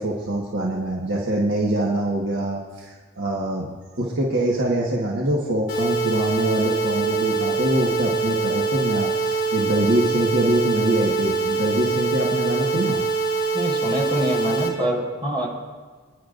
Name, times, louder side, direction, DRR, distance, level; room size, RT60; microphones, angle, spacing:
voice 1, 0.0-3.7 4.0-13.0, right 1 dB, 55° right, -3 dB, 1.5 m, -24 dB
sound 1, 5.7-14.7, right 4 dB, 55° left, 3.2 m, -24 dB
voice 2, 13.5-15.5, equal, 25° right, -5 dB, 4.6 m, -25 dB
27.0 x 10.5 x 2.6 m, 1.4 s
head